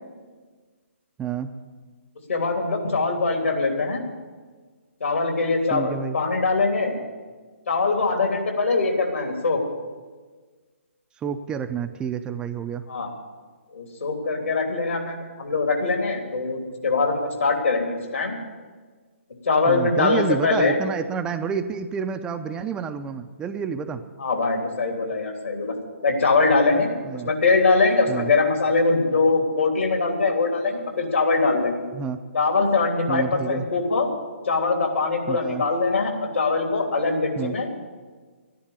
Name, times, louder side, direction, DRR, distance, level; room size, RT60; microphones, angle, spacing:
voice 1, 1.2-1.5 5.7-6.2 11.2-12.9 19.7-24.0 27.0-27.3 28.1-28.3 31.9-32.2 33.1-33.7 35.3-35.6 37.4-37.6, right 6 dB, 10° right, 8 dB, 0.4 m, -29 dB
voice 2, 2.3-4.0 5.0-7.0 7.7-9.6 12.9-13.1 13.7-18.4 19.4-20.8 24.2-25.7 26.0-31.8 32.3-34.1 34.4-37.7, left 3 dB, 75° left, 2 dB, 3.1 m, -22 dB
13.0 x 10.5 x 8.1 m, 1.4 s
figure-of-eight pair, 140°, 7 cm